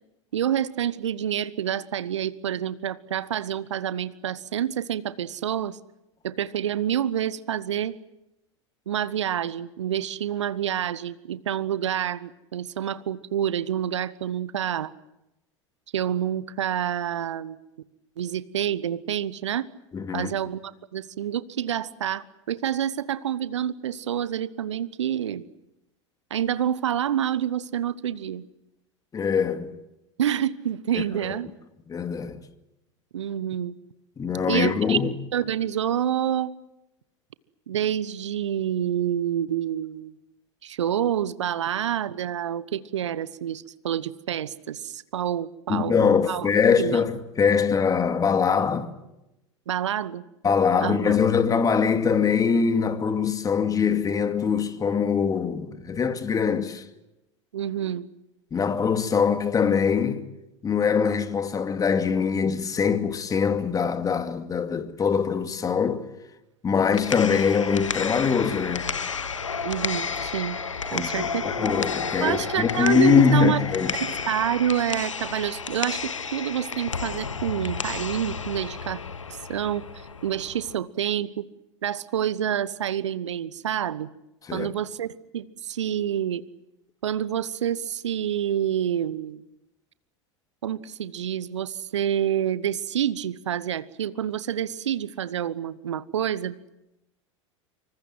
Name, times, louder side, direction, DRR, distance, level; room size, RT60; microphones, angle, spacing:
voice 1, 0.3-5.8 6.2-8.0 8.9-14.9 15.9-17.6 18.2-19.7 20.1-25.5 26.3-28.4 30.2-31.5 33.1-33.7 34.5-35.0 35.3-36.5 37.7-40.1 40.6-46.5 46.8-47.0 49.7-50.2 50.8-51.2 57.5-58.1 69.6-70.6 70.9-71.4 72.2-73.6 74.0-79.0 79.3-79.8 80.2-81.5 81.8-84.1 84.5-86.4 87.0-89.4 90.6-96.5, right 10 dB, 70° right, 1.1 m, -28 dB
voice 2, 19.9-20.3 29.1-29.7 30.9-31.0 31.9-32.4 34.2-35.1 45.7-48.9 50.4-56.8 58.5-60.2 60.6-66.0 66.6-68.9 70.9-73.9 84.5-84.7, left 6 dB, 20° left, 2.4 m, -23 dB
sound 1, 66.7-80.7, left 5 dB, 80° left, 1.3 m, -32 dB
26.5 x 24.5 x 7.9 m
figure-of-eight pair, 85°, 16 cm